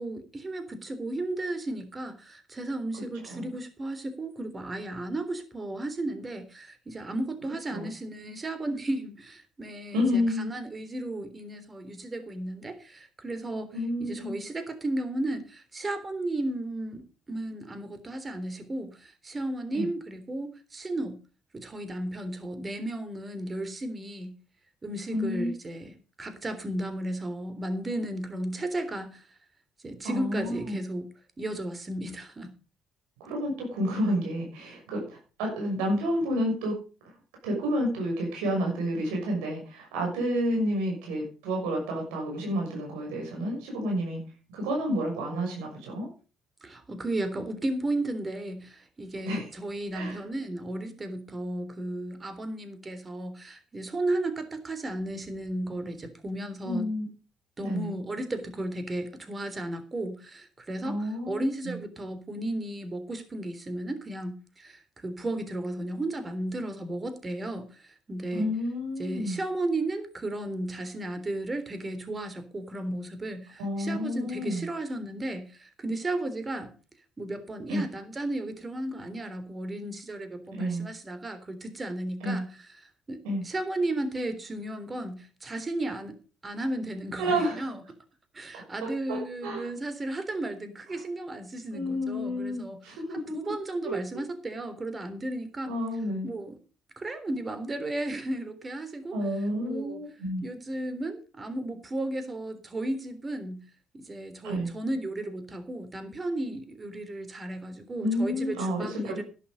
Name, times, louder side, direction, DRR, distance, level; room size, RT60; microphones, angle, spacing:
voice 1, 0.0-17.0 17.3-21.2 21.5-24.4 24.8-29.3 29.8-31.1 31.4-32.5 46.6-56.9 57.6-68.5 69.0-76.7 77.2-86.2 86.4-87.8 88.3-95.7 96.2-96.5 97.0-99.2 99.6-100.0 100.4-103.7 103.9-109.2, right 1 dB, 30° right, 10 dB, 3.5 m, -34 dB
voice 2, 9.9-10.5 13.7-14.4 19.7-19.9 25.1-25.5 30.0-30.8 33.2-36.8 37.4-44.2 44.5-46.1 49.2-49.5 49.9-50.2 56.6-57.1 57.6-57.9 60.8-61.8 68.3-69.4 73.6-74.7 77.7-77.8 80.5-80.9 82.2-82.4 83.2-83.4 87.2-87.7 88.8-89.7 91.7-93.5 93.8-93.9 95.7-96.3 99.1-100.4 104.4-104.7 108.0-109.2, equal, 85° right, 0 dB, 6.3 m, -30 dB
11.5 x 11.0 x 5.2 m, 0.35 s
hypercardioid pair, 60°, 0 cm